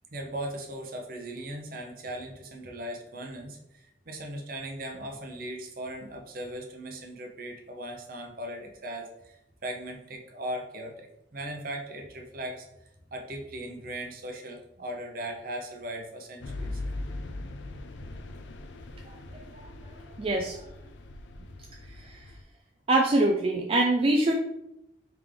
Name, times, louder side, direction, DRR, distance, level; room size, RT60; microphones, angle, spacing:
voice 1, 0.1-16.8, right 1 dB, 50° right, 2 dB, 0.7 m, -38 dB
sound 1, 16.4-22.4, left 2 dB, 85° left, 0.4 m, -40 dB
voice 2, 19.1-19.4 20.2-20.7 21.9-22.3 22.9-24.3, right 2 dB, 30° right, 0 dB, 0.4 m, -25 dB
3.5 x 3.5 x 3.3 m, 0.85 s
head